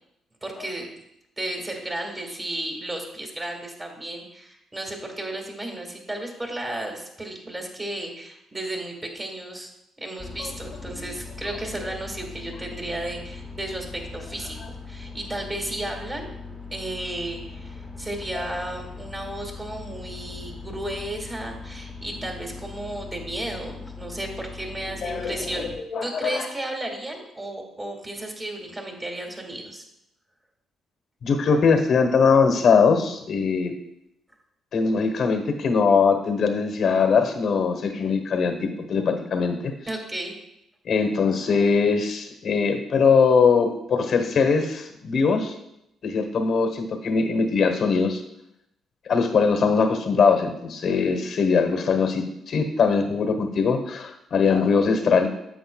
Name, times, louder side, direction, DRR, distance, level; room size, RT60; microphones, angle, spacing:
voice 1, 0.4-0.9 1.4-9.7 10.0-25.7 26.0-29.8 39.9-40.3, right 1 dB, 20° right, 1 dB, 2.0 m, -34 dB
sound 1, 10.2-25.8, left 4 dB, 15° left, 1.0 m, -40 dB
voice 2, 25.0-26.5 31.2-33.7 34.7-39.7 40.8-45.5 46.0-48.2 49.1-55.3, left 5 dB, 60° left, 6 dB, 1.2 m, -21 dB
10.0 x 7.9 x 2.3 m, 0.81 s
cardioid pair, 90°, 0 cm